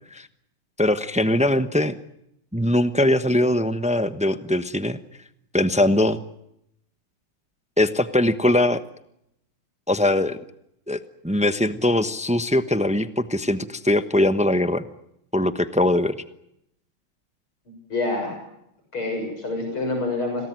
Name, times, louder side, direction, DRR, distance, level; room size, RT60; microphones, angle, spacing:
voice 1, 0.8-1.9 2.5-5.0 5.5-6.2 7.8-8.8 9.9-10.4 10.9-11.0 11.2-14.8 15.3-16.2, left 1 dB, 10° right, 11 dB, 0.4 m, -21 dB
voice 2, 17.9-18.4 18.9-20.5, left 2 dB, 85° left, 3 dB, 7.8 m, -27 dB
27.0 x 18.5 x 9.4 m, 0.79 s
omnidirectional pair, 2.3 m